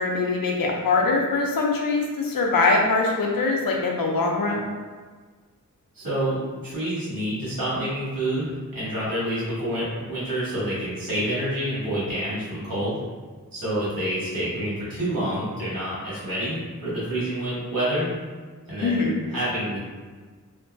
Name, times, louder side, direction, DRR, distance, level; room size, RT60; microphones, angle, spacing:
voice 1, 0.0-4.6 18.8-19.2, left 3 dB, 90° left, 0 dB, 0.5 m, -23 dB
voice 2, 5.9-13.0 13.5-18.1 18.7-19.1 19.3-19.8, right 1 dB, 80° right, -9 dB, 1.4 m, -28 dB
2.8 x 2.5 x 2.2 m, 1.4 s
wide cardioid pair, 75°, 34 cm